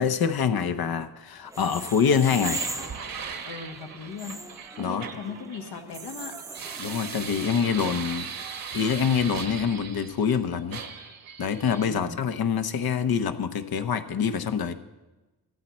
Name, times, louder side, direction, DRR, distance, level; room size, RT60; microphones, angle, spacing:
voice 1, 0.0-2.6 4.8-5.0 6.8-8.3 8.7-10.8 11.4-14.7, left 7 dB, 65° left, 9 dB, 0.9 m, -25 dB
sound 1, 1.5-7.9, right 2 dB, 10° right, 0.5 m, -39 dB
sound 2, 2.4-10.4 10.7-11.9, right 6 dB, 55° right, 1.2 m, -38 dB
voice 2, 3.4-4.4 4.7-6.4 11.8-12.3, left 5 dB, 85° left, 4 dB, 1.6 m, -38 dB
15.0 x 13.5 x 4.3 m, 1.1 s
wide cardioid pair, 145°, 40 cm